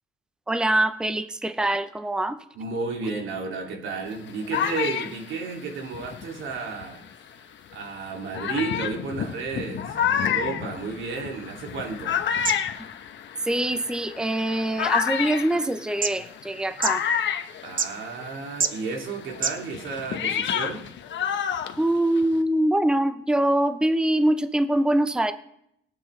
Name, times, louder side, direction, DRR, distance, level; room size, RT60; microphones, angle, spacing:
voice 1, 0.5-2.4 13.4-17.0 21.8-25.3, right 1 dB, 5° right, 10 dB, 0.7 m, -24 dB
voice 2, 2.5-12.2 17.6-20.9, right 4 dB, 80° right, 1 dB, 2.7 m, -32 dB
sound 1, 4.0-7.1 7.7-7.8 8.3-18.4 18.6-22.4, left 8 dB, 65° left, 1.1 m, -29 dB
sound 2, 10.8-20.0, right 6 dB, 45° right, 0.9 m, -35 dB
22.0 x 8.9 x 3.3 m, 0.76 s
cardioid pair, 90°, 20 cm